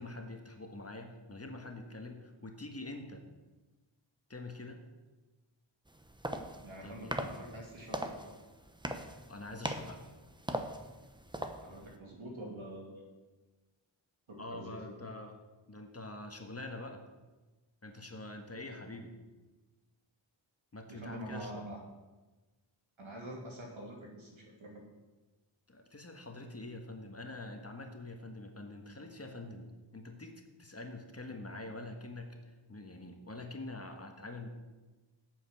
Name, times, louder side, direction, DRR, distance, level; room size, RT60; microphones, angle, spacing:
voice 1, 0.0-3.2 4.3-4.8 6.8-7.3 9.3-10.0 14.4-15.4 15.7-17.0 17.8-19.1 20.7-21.6 25.7-34.5, left 2 dB, 30° left, 4 dB, 1.5 m, -45 dB
sound 1, 5.9-12.0, right 1 dB, 10° right, 0.9 m, -41 dB
voice 2, 6.6-8.2 11.6-13.1 14.3-14.9 20.9-21.8 23.0-24.9, right 1 dB, 80° right, -1 dB, 2.6 m, -46 dB
8.7 x 7.1 x 7.3 m, 1.2 s
wide cardioid pair, 65°, 47 cm